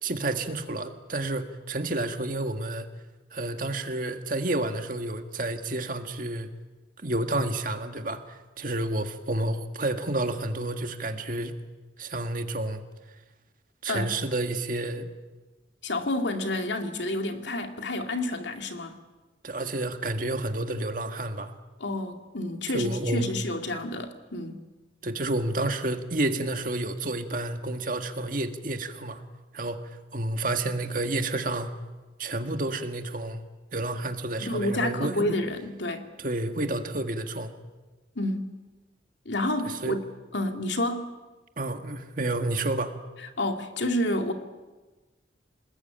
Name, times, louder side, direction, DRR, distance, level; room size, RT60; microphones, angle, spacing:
voice 1, 0.0-2.9 3.3-6.5 7.0-11.5 12.0-12.8 13.8-15.1 19.4-21.5 22.7-23.3 25.0-29.2 29.5-31.7 32.2-33.4 33.7-35.3 36.2-37.5 39.8-39.9 41.6-42.9, right 2 dB, 45° right, 1.8 m, -30 dB
voice 2, 15.8-19.0 21.8-24.6 34.4-36.1 38.2-38.5 39.3-40.0 40.3-41.2 43.4-44.3, left 1 dB, 80° left, 2.4 m, -29 dB
27.0 x 20.0 x 9.0 m
head